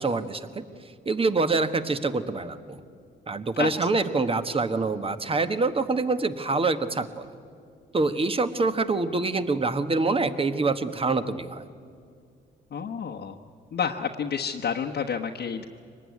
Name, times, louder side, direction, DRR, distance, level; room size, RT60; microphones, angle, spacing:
voice 1, 0.0-2.8 3.3-7.3 7.9-11.6, right 3 dB, 30° right, 10 dB, 1.3 m, -26 dB
voice 2, 12.7-13.4 13.7-15.7, left 6 dB, 55° left, 1 dB, 1.2 m, -29 dB
24.0 x 19.5 x 9.5 m, 2.3 s
cardioid pair, 90°, 20 cm